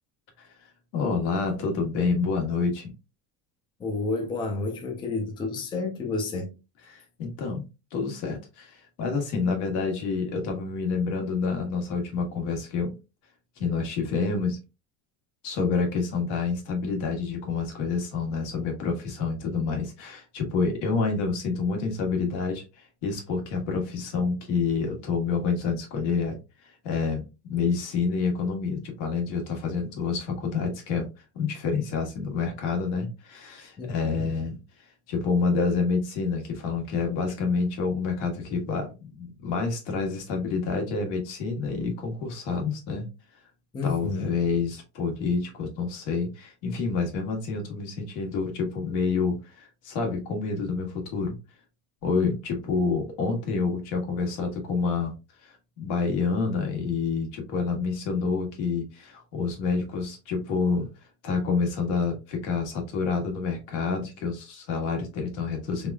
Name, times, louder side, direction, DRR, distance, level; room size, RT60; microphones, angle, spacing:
voice 1, 0.4-2.9 6.9-7.6 7.9-12.9 13.6-14.6 15.4-31.1 31.3-43.1 43.8-51.4 52.0-55.1 55.4-60.9 61.2-65.9, left 4 dB, 75° left, 1.5 m, -28 dB
voice 2, 3.8-6.5 33.8-34.4 43.7-44.3, left 3 dB, 15° left, 0.5 m, -30 dB
3.5 x 3.5 x 2.2 m
cardioid pair, 170°, 35 cm